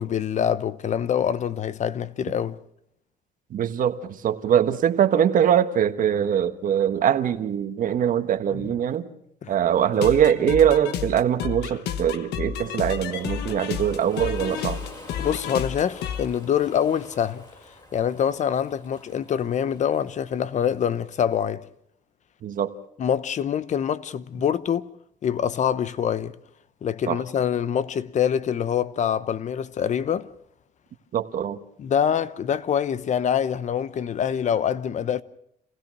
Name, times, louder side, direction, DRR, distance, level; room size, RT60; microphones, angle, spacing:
voice 1, 0.0-2.6 8.5-8.7 9.4-9.5 15.2-17.4 17.9-21.6 23.0-24.9 25.2-26.3 26.8-30.3 31.8-35.2, left 8 dB, 45° left, 0.9 m, -25 dB
voice 2, 3.5-4.0 4.2-9.1 9.5-14.8 22.4-22.7 27.1-27.2 31.1-31.6, right 9 dB, 55° right, 1.5 m, -22 dB
Moombahton Trance, 9.9-16.3, left 8 dB, 80° left, 1.3 m, -31 dB
Ocean, 12.5-21.4, left 2 dB, 25° left, 6.8 m, -48 dB
27.5 x 16.5 x 6.2 m
cardioid pair, 110°, 17 cm